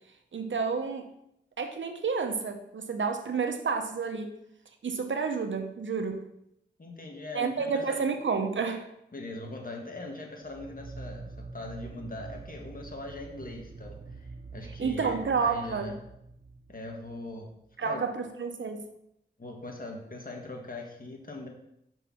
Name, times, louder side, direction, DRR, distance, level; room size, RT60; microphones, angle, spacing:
voice 1, 0.3-1.1 1.6-4.4 4.8-6.3 7.3-8.8 14.8-15.9 17.8-18.9, right 5 dB, 80° right, 7 dB, 0.8 m, -30 dB
voice 2, 6.8-8.1 9.1-15.9 16.7-17.5 17.8-18.0 19.4-21.5, left 2 dB, 45° left, 1 dB, 1.6 m, -41 dB
sound 1, 10.4-17.8, right 3 dB, 35° right, 0.5 m, -45 dB
5.5 x 4.6 x 5.7 m, 0.79 s
cardioid pair, 40°, 20 cm